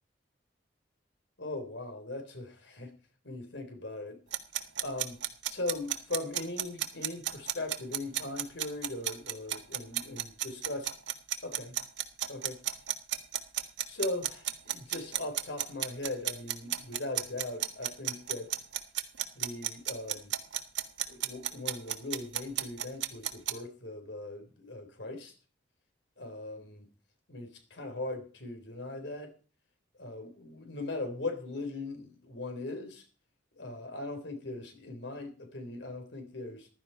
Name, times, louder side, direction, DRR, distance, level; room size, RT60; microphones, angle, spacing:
voice 1, 1.4-2.9 3.2-4.2 4.8-5.2 5.5-10.9 11.4-11.8 12.3-12.6 13.9-18.5 19.4-20.3 21.1-25.3 26.2-26.9 27.3-29.3 30.0-33.1 33.6-36.7, left 2 dB, 70° left, 6 dB, 3.8 m, -39 dB
sound 1, 4.3-23.5, right 12 dB, 75° right, 1.6 m, -32 dB
15.0 x 12.0 x 4.5 m, 0.36 s
head